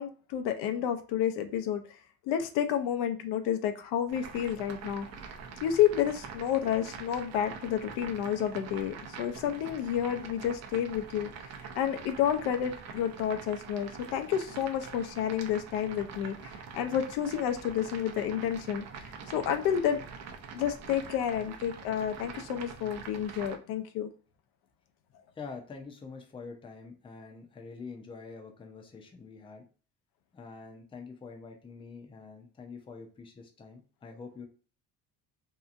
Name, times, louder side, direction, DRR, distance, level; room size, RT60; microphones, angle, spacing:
voice 1, 0.0-1.8 2.3-5.1 5.6-11.3 11.8-18.8 19.3-20.0 20.5-24.1, left 9 dB, 85° left, 7 dB, 0.6 m, -30 dB
sound 1, 4.1-23.6, right 5 dB, 45° right, 0.5 m, -45 dB
voice 2, 25.3-29.7 30.3-34.4, left 4 dB, 15° left, 3 dB, 0.4 m, -46 dB
2.8 x 2.4 x 2.4 m, 0.38 s
cardioid pair, 125°, 37 cm